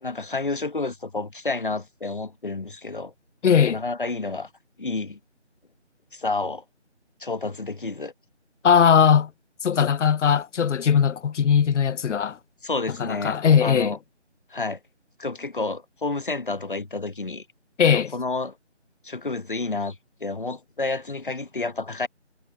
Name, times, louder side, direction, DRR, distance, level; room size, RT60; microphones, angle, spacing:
voice 1, 0.0-3.1 3.7-4.5 4.8-5.2 6.1-6.6 7.2-8.1 12.6-14.0 14.5-14.8 15.2-17.5 17.9-18.6 19.0-22.1, left 3 dB, 45° left, 1.1 m, -30 dB
voice 2, 3.4-3.8 8.6-9.3 9.6-12.4 13.0-14.0 17.8-18.1, left 7 dB, 80° left, 0.6 m, -19 dB
figure-of-eight pair, 175°, 35 cm